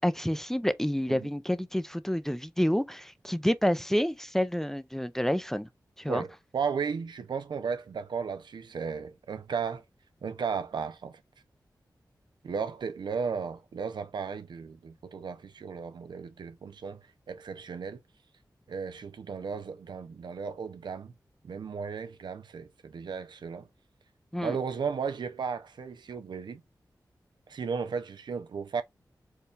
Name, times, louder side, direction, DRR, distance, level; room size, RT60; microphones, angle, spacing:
voice 1, 0.0-5.7 6.0-6.2 24.3-24.6, equal, 5° left, 0.5 m, -28 dB
voice 2, 6.1-9.8 10.2-11.2 12.4-18.0 18.7-21.1 21.4-23.7 24.4-26.6 27.5-28.8, right 6 dB, 85° right, 0.5 m, -35 dB
4.6 x 2.3 x 3.2 m
cardioid pair, 55°, 7 cm